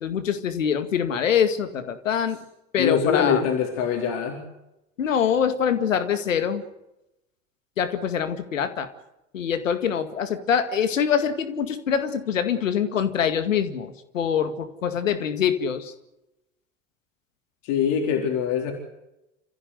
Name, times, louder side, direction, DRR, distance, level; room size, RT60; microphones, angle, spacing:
voice 1, 0.0-2.4 2.7-3.5 5.0-6.6 7.8-8.9 9.3-15.9, left 8 dB, 80° left, 10 dB, 2.2 m, -24 dB
voice 2, 2.8-4.4 17.6-18.7, left 7 dB, 60° left, 2 dB, 4.1 m, -23 dB
29.0 x 15.0 x 8.1 m, 0.90 s
figure-of-eight pair, 65°, 38 cm